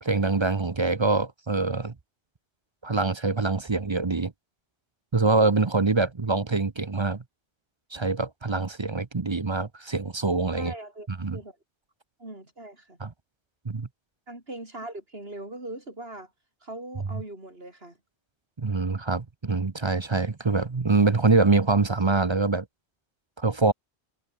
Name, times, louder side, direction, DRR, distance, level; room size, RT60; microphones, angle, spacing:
voice 1, 0.0-1.9 2.8-4.3 5.1-7.2 7.9-10.7 11.1-11.4 13.0-13.1 13.6-13.9 18.6-22.6 23.4-23.7, right 3 dB, 30° right, 0.8 m, -24 dB
voice 2, 10.5-11.6 12.2-13.0 14.3-16.3 16.6-18.0, right 1 dB, 60° right, 6.5 m, -40 dB
omnidirectional pair, 1.1 m